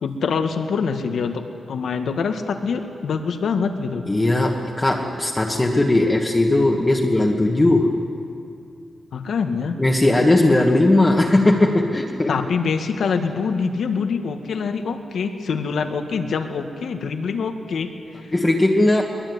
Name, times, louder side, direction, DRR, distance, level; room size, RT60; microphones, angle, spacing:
voice 1, 0.0-1.4 1.7-4.0 9.1-9.7 12.3-17.9, left 5 dB, 75° left, 6 dB, 1.9 m, -24 dB
voice 2, 4.1-8.0 9.8-12.4 18.3-19.0, left 2 dB, 15° left, -1 dB, 1.5 m, -18 dB
22.5 x 22.0 x 9.5 m, 2.4 s
wide cardioid pair, 170°, 0 cm